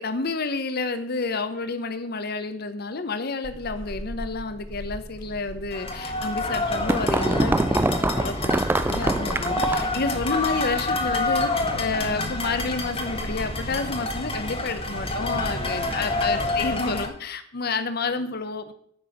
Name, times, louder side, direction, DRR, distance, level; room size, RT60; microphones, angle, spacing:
voice 1, 0.0-18.7, left 3 dB, 50° left, 10 dB, 0.9 m, -30 dB
Walk footsteps / Squeak, 3.4-16.1, equal, 75° left, 3.8 m, -42 dB
sound 1, 5.7-17.1, left 2 dB, 30° left, 1.5 m, -28 dB
sound 2, 6.2-10.0, right 2 dB, 10° right, 0.3 m, -24 dB
9.6 x 6.2 x 7.9 m, 0.66 s
head